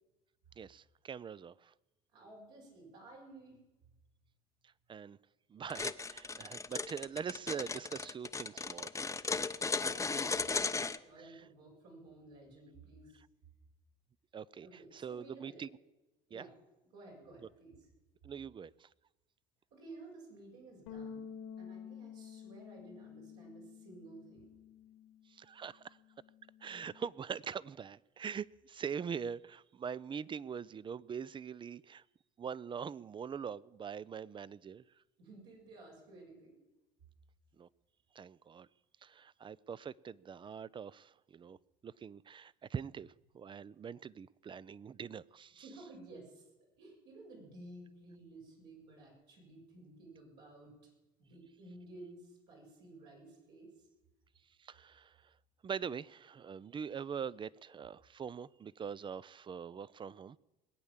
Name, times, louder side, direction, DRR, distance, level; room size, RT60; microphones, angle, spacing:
voice 1, 0.6-1.7 4.9-5.2 5.5-8.9 11.2-11.4 14.3-14.7 14.9-15.7 16.3-16.4 18.2-18.9 25.3-26.0 26.6-32.0 32.4-34.8 37.6-37.7 38.1-38.7 39.0-41.6 41.8-45.6 54.6-55.3 55.6-60.4, right 7 dB, 30° right, 0.5 m, -43 dB
voice 2, 2.1-3.6 9.7-10.7 11.0-13.2 14.6-15.6 16.3-16.5 16.9-17.8 19.7-21.3 21.6-24.5 35.2-36.6 45.6-46.5 46.8-50.7 51.2-53.9, right 2 dB, 80° right, 7.2 m, -54 dB
sound 1, 5.7-11.0, left 4 dB, 15° left, 0.7 m, -36 dB
sound 2, 20.9-25.4 25.7-27.1, left 7 dB, 90° left, 1.9 m, -51 dB
21.0 x 8.5 x 7.3 m
supercardioid pair, 85°, 17 cm